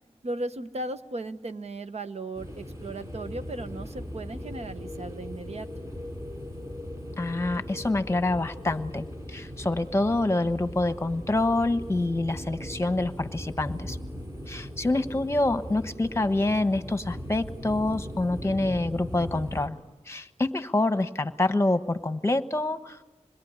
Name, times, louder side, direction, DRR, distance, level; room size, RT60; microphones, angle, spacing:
voice 1, 0.2-5.7, right 2 dB, 65° right, 9 dB, 1.1 m, -36 dB
sound 1, 2.4-19.7, equal, 25° right, 5.3 m, -39 dB
voice 2, 7.2-14.0 14.5-19.8 20.1-23.0, left 2 dB, 25° left, 10 dB, 1.2 m, -26 dB
27.0 x 21.5 x 9.6 m, 1.1 s
wide cardioid pair, 70°, 12 cm